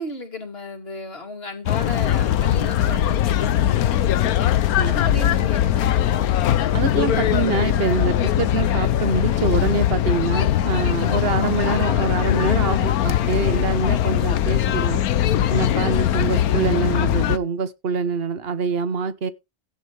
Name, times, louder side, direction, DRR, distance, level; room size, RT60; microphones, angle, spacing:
voice 1, 0.0-4.5 4.8-6.3, left 2 dB, 40° left, 3.2 m, -34 dB
sound 1, 1.7-17.4, left 11 dB, 85° left, 1.3 m, -20 dB
voice 2, 6.7-15.0 15.5-19.3, right 5 dB, 45° right, 1.3 m, -25 dB
16.0 x 7.8 x 3.4 m
omnidirectional pair, 1.5 m